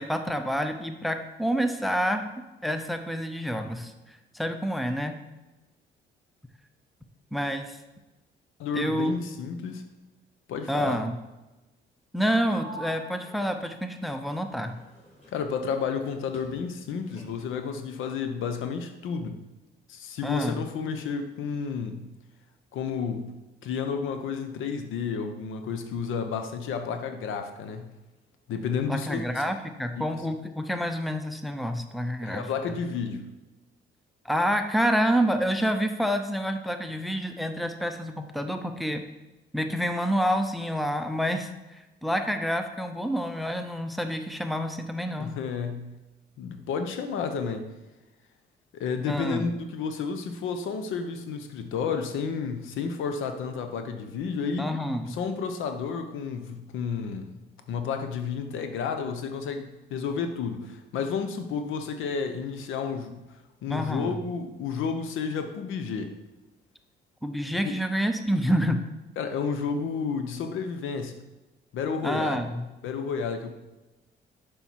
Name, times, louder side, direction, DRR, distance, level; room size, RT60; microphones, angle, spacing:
voice 1, 0.0-5.2 7.3-7.8 8.7-9.2 10.7-11.2 12.1-14.8 20.2-20.6 28.9-32.5 34.2-39.0 39.5-45.4 49.0-49.5 54.6-55.2 63.7-64.2 67.2-68.9 72.0-72.7, equal, ahead, 7 dB, 0.7 m, -28 dB
voice 2, 8.6-9.8 10.5-11.0 15.3-19.4 19.9-22.1 22.7-23.3 23.6-27.9 28.5-29.3 30.0-30.1 32.2-33.2 45.2-45.9 46.4-47.7 48.7-54.7 55.1-57.4 57.7-63.2 63.6-66.1 67.6-67.7 69.2-71.2 71.7-72.4 72.8-73.5, left 6 dB, 85° left, 7 dB, 0.9 m, -31 dB
Sliding door, 12.5-16.1 16.3-17.7, equal, 30° left, 2.5 m, -48 dB
7.0 x 5.5 x 4.6 m, 1.0 s
cardioid pair, 90°, 20 cm